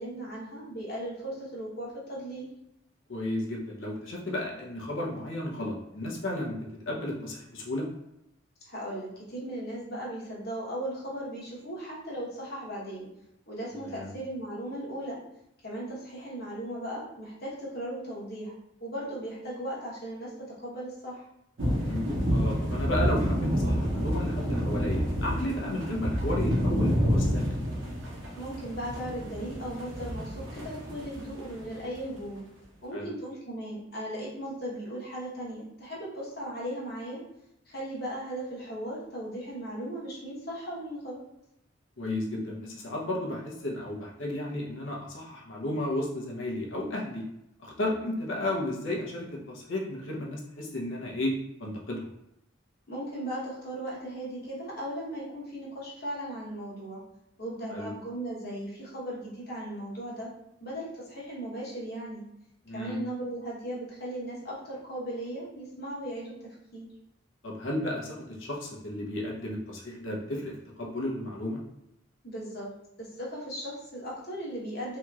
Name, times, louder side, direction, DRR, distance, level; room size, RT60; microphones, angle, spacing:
voice 1, 0.0-2.5 8.7-13.1 13.5-15.2 15.6-18.5 18.8-20.3 20.6-21.2 28.3-32.4 32.8-37.2 37.7-41.2 52.9-57.0 57.4-60.3 60.6-62.2 62.7-66.3 66.7-66.9 72.2-72.7 73.0-75.0, right 1 dB, 50° left, -5 dB, 1.0 m, -37 dB
voice 2, 3.1-7.9 13.8-14.1 21.7-27.5 32.9-33.1 42.0-47.2 47.6-51.3 51.6-52.0 57.7-57.9 62.6-63.0 67.4-71.6, left 1 dB, 75° left, -2 dB, 0.7 m, -33 dB
sound 1, 21.6-31.7, equal, 75° right, 0.8 m, -29 dB
2.9 x 2.8 x 2.3 m, 0.84 s
head